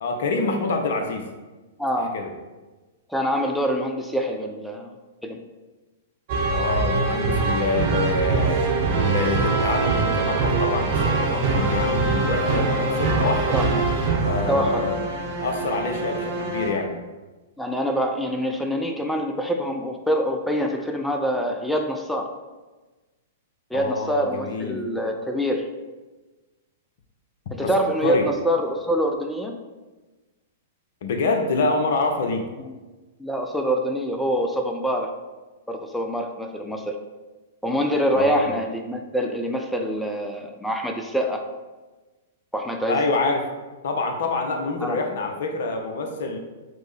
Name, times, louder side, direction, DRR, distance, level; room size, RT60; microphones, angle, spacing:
voice 1, 0.0-1.3 1.9-2.3 6.5-8.6 9.0-13.6 14.2-15.0 15.4-16.9 23.7-24.8 27.6-27.7 28.0-28.3 31.0-32.5 38.1-38.5 42.9-43.4 43.8-46.4, left 3 dB, 60° left, 5 dB, 0.5 m, -26 dB
voice 2, 1.8-2.1 3.1-4.9 5.2-5.4 13.5-13.8 14.5-14.9 17.6-22.3 23.7-25.7 27.5-29.6 32.6-32.7 33.2-35.1 35.7-37.0 37.6-41.4 42.5-43.0 44.8-45.0, equal, ahead, 3 dB, 0.3 m, -25 dB
sound 1, 6.3-16.8, right 3 dB, 45° right, 0.7 m, -23 dB
6.0 x 2.0 x 3.2 m, 1.2 s
figure-of-eight pair, 105°, 0 cm